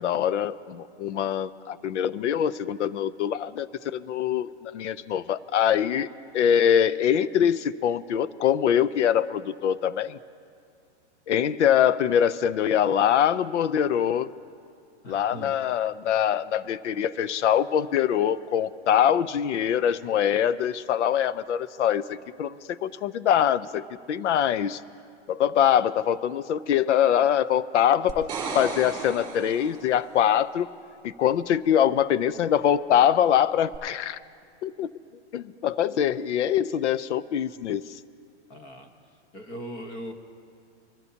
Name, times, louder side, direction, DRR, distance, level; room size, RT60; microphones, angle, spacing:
voice 1, 0.0-6.1 6.3-10.2 11.3-14.3 15.1-24.8 25.3-30.7 31.0-34.2 34.6-34.9 35.3-37.8, left 9 dB, 80° left, 16 dB, 0.6 m, -24 dB
voice 2, 15.0-15.5 38.5-38.9 39.3-40.1, equal, 20° left, 5 dB, 1.0 m, -39 dB
sound 1, 28.1-30.0 33.7-33.8, right 4 dB, 15° right, 3.9 m, -34 dB
23.5 x 14.0 x 2.8 m, 2.3 s
hypercardioid pair, 170°, 35 cm